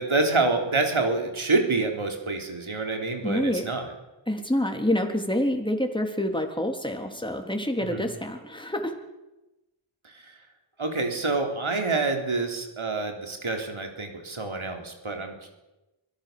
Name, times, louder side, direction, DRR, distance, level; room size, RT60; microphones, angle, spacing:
voice 1, 0.0-3.9 7.8-8.1 10.0-10.3 10.8-15.5, right 3 dB, 75° right, 3 dB, 3.8 m, -27 dB
voice 2, 3.2-3.6 4.3-8.9, left 1 dB, 10° left, 4 dB, 3.5 m, -27 dB
24.5 x 17.0 x 6.9 m, 1.0 s
wide cardioid pair, 40°, 48 cm